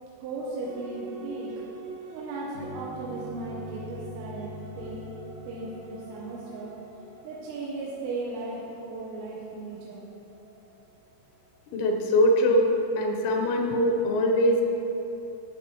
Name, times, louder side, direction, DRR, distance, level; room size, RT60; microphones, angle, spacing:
voice 1, 0.2-1.5 2.1-5.1 5.5-6.7 7.2-10.1, right 3 dB, 90° right, -5 dB, 3.5 m, -36 dB
sound 1, 0.6-12.6, right 3 dB, 70° right, 3.3 m, -45 dB
sound 2, 2.5-6.7, left 3 dB, 70° left, 1.2 m, -44 dB
voice 2, 11.7-14.6, equal, 85° left, 2 dB, 3.5 m, -22 dB
14.5 x 5.0 x 3.0 m, 2.9 s
omnidirectional pair, 5.9 m